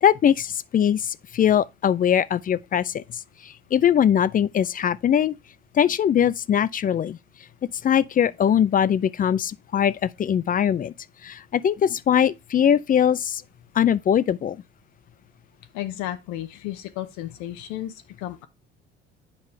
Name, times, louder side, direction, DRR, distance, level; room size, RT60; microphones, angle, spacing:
voice 1, 0.0-3.0 3.4-5.3 5.7-7.2 7.8-10.9 11.2-13.4 13.8-14.6, left 9 dB, 30° left, 0.4 m, -21 dB
voice 2, 15.7-18.5, left 13 dB, 70° left, 0.8 m, -33 dB
8.3 x 5.1 x 3.2 m
hypercardioid pair, 65°, 30 cm